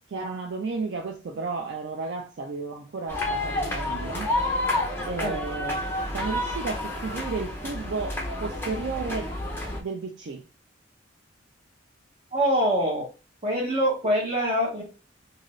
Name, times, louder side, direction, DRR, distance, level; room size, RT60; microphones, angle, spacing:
voice 1, 0.1-4.3 5.0-5.9 6.1-9.3 9.8-10.4, right 4 dB, 60° right, 0.4 m, -33 dB
sound 1, 3.1-9.8, left 1 dB, 10° left, 0.5 m, -29 dB
voice 2, 12.3-13.0 13.4-14.8, equal, 30° right, 1.1 m, -24 dB
2.7 x 2.5 x 3.1 m
head